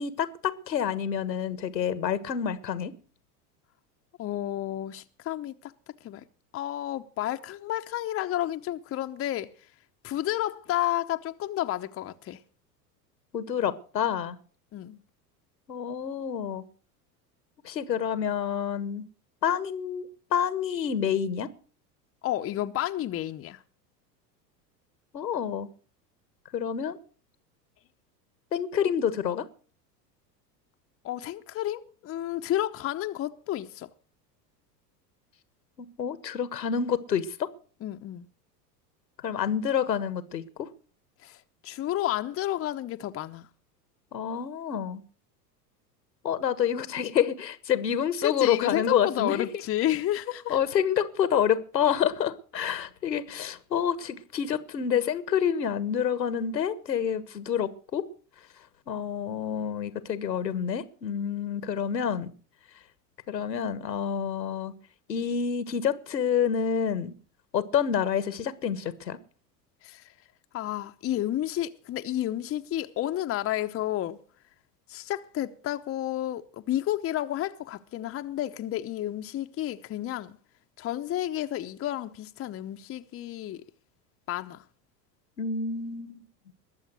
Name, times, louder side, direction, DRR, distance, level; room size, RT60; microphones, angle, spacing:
voice 1, 0.0-2.9 13.3-14.4 15.7-16.6 17.6-19.1 19.4-21.5 25.1-25.7 26.5-27.0 28.5-29.5 36.0-37.5 39.2-40.7 44.1-45.0 46.2-49.5 50.5-58.0 58.9-62.3 63.3-64.7 65.1-67.1 67.5-69.2 85.4-86.2, left 8 dB, 85° left, 1.4 m, -28 dB
voice 2, 4.2-5.7 6.0-6.2 6.5-9.5 10.0-12.4 14.7-15.0 22.2-23.6 31.0-33.9 37.8-38.3 41.2-43.5 48.2-50.6 69.8-70.1 70.5-74.2 74.9-80.4 80.8-83.6 84.3-84.6, left 13 dB, 25° left, 0.9 m, -31 dB
21.0 x 7.4 x 6.2 m
figure-of-eight pair, 85°, 49 cm